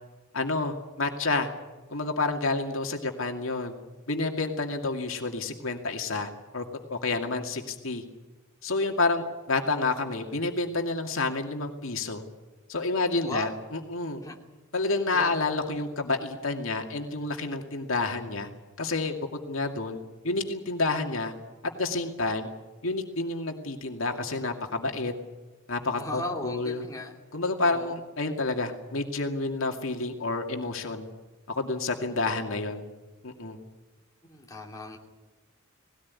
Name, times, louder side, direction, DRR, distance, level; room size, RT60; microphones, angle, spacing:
voice 1, 0.3-1.5 1.9-3.7 4.1-6.6 6.9-8.0 8.6-12.2 12.7-14.2 14.7-18.5 18.8-20.0 20.2-21.3 21.6-22.5 22.8-25.1 25.7-26.8 27.3-31.1 31.5-32.8 33.2-33.6, left 3 dB, 75° left, 3 dB, 2.3 m, -29 dB
voice 2, 26.0-27.1 27.6-27.9 34.3-35.0, left 1 dB, 15° left, 0 dB, 2.8 m, -36 dB
19.5 x 18.0 x 9.7 m, 1.2 s
head